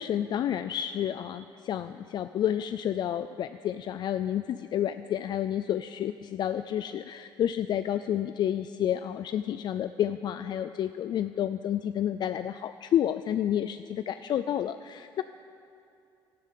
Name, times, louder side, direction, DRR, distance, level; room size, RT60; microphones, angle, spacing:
voice 1, 0.0-15.2, left 10 dB, 50° left, 11 dB, 0.4 m, -30 dB
13.5 x 12.5 x 8.3 m, 2.6 s
cardioid pair, 120°, 9 cm